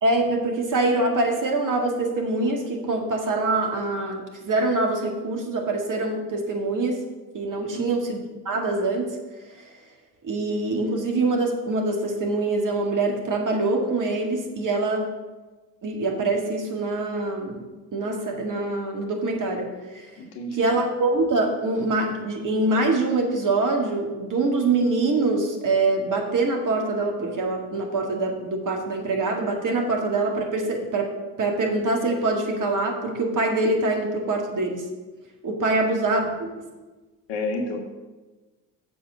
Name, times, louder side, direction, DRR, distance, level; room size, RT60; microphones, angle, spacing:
voice 1, 0.0-7.0 7.3-8.2 8.5-9.1 10.2-15.1 15.8-17.7 17.9-20.1 20.5-31.1 31.4-34.8 35.4-36.3 36.6-36.7, right 2 dB, 40° right, 2 dB, 2.1 m, -24 dB
voice 2, 7.6-7.9 20.2-20.7 35.7-36.0 37.3-37.8, left 2 dB, 60° left, 3 dB, 1.7 m, -31 dB
7.0 x 6.1 x 7.2 m, 1.2 s
hypercardioid pair, 60°, 47 cm